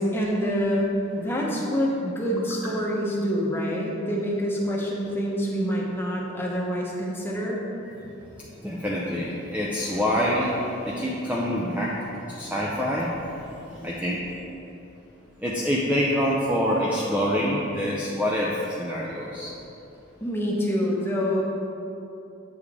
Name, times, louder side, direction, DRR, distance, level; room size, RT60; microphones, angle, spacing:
voice 1, 0.0-7.6 20.2-21.4, equal, 10° left, -3 dB, 1.0 m, -26 dB
voice 2, 8.6-14.2 15.4-19.5, equal, 5° right, -5 dB, 0.5 m, -26 dB
8.1 x 7.0 x 3.6 m, 2.9 s
head